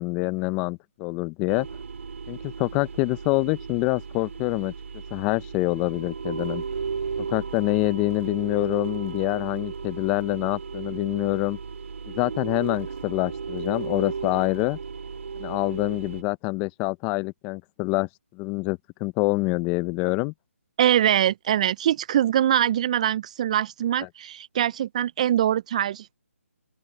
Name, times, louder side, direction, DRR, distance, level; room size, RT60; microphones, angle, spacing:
voice 1, 0.0-1.7 2.3-4.7 5.1-6.6 7.3-11.6 12.1-14.8 15.4-20.3, left 25 dB, 15° left, 0.6 m, -26 dB
sound 1, 1.5-16.2, right 5 dB, 65° right, 2.3 m, -35 dB
voice 2, 20.8-26.1, right 11 dB, 30° right, 0.3 m, -23 dB
open air
hypercardioid pair, 155°, 8 cm